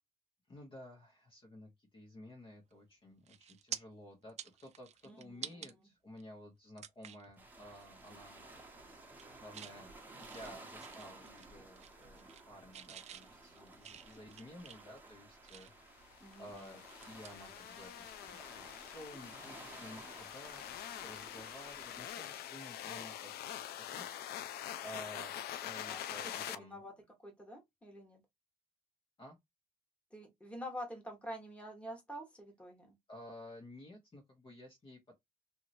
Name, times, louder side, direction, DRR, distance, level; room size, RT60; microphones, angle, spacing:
voice 1, 0.5-8.4 9.4-9.9 10.2-23.3 23.7-25.3 25.6-26.8 29.2-29.4 33.1-35.2, left 1 dB, 30° left, 1.1 m, -53 dB
sound 1, 2.7-2.9 3.3-3.8 4.2-5.7 6.2-6.3 6.8-7.3 7.7-7.9 8.2-8.6 9.0-9.8 10.2-11.5 11.8-12.5 12.7-15.9 16.3-18.2 18.4-18.6 20.5-20.7, right 9 dB, 40° right, 0.4 m, -49 dB
voice 2, 5.1-5.7 16.2-16.8 25.8-26.9 27.2-28.2 30.1-33.0, equal, 5° left, 1.4 m, -47 dB
sound 2, 7.4-22.1, right 2 dB, 10° right, 1.0 m, -55 dB
sound 3, 16.1-26.5, left 11 dB, 70° left, 0.5 m, -45 dB
3.0 x 2.7 x 2.6 m
cardioid pair, 110°, 17 cm